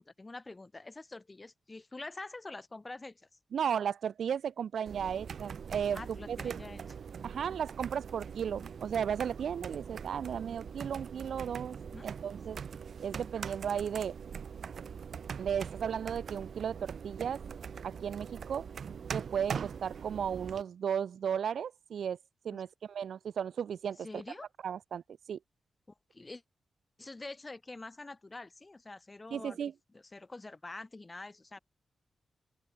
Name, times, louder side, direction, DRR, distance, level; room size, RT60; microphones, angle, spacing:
voice 1, 0.0-3.3 5.9-6.8 7.3-7.6 11.9-12.1 22.5-22.6 24.0-24.5 26.1-26.4 27.0-29.6 29.9-31.6, left 2 dB, 20° left, 2.9 m, -46 dB
voice 2, 3.5-6.0 6.3-6.5 7.2-11.8 12.0-12.6 13.0-14.1 15.4-17.4 17.8-18.7 19.1-22.2 22.4-24.2 24.6-25.0 25.3-25.4 29.3-29.7, right 8 dB, 80° right, 1.1 m, -35 dB
sound 1, 4.9-20.6, right 6 dB, 60° right, 1.8 m, -42 dB
open air
wide cardioid pair, 155°, 0 cm